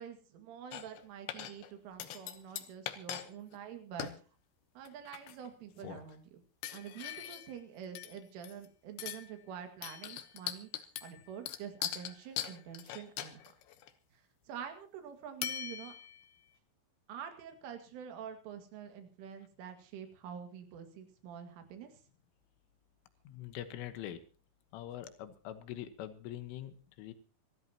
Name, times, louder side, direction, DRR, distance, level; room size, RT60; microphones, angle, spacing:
voice 1, 0.0-4.1 4.8-6.4 6.7-13.5 14.1-14.2 14.5-15.9 17.1-21.9, right 8 dB, 80° right, 6 dB, 4.6 m, -47 dB
sound 1, 0.7-1.0 1.3-1.7 2.0-3.3 3.5-3.6 4.0-4.2 4.9-5.5 5.8-6.1 6.6-7.6 8.0-8.7 9.0-9.3 9.8-13.9 15.4-16.3, left 11 dB, 70° left, 2.5 m, -41 dB
voice 2, 23.3-24.2 24.7-27.1, left 12 dB, 90° left, 10 dB, 3.8 m, -44 dB
26.5 x 14.0 x 2.9 m, 0.36 s
omnidirectional pair, 5.6 m